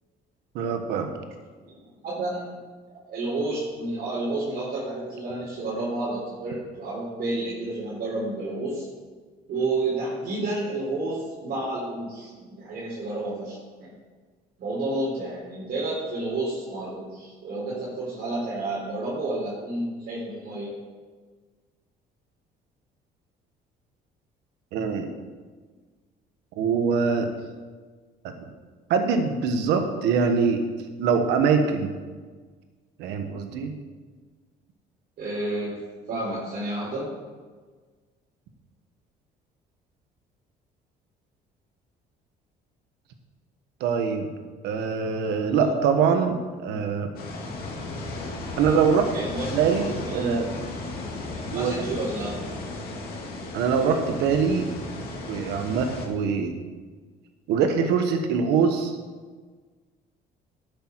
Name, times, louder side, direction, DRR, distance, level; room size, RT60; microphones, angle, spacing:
voice 1, 0.5-1.1 24.7-25.1 26.6-27.3 28.2-28.3 28.9-30.6 31.0-31.9 33.0-33.7 43.8-44.3 44.6-47.1 48.6-49.1 49.5-50.5 51.5-51.7 53.5-54.7 55.0-56.5 57.5-58.9, right 6 dB, 90° right, 6 dB, 1.3 m, -23 dB
voice 2, 1.6-2.6 3.1-8.9 9.5-13.9 14.6-20.7 35.2-35.7 36.1-37.1 45.4-45.7 49.1-49.4 50.1-50.4 51.5-52.4, right 2 dB, 65° right, -7 dB, 4.0 m, -30 dB
sound 1, 47.1-56.1, left 2 dB, 60° left, 2.5 m, -35 dB
12.0 x 8.5 x 4.7 m, 1.4 s
cardioid pair, 110°, 17 cm